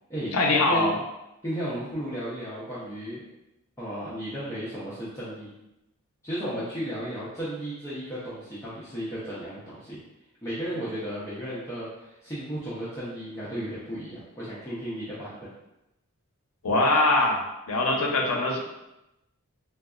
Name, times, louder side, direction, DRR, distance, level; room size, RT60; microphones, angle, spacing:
voice 1, 0.3-0.9 16.6-18.6, left 2 dB, 80° left, 0 dB, 0.6 m, -23 dB
voice 2, 1.4-3.2 3.8-5.5 6.2-10.0 10.4-15.5, equal, 15° left, -10 dB, 0.6 m, -34 dB
3.8 x 2.3 x 2.4 m, 0.92 s
head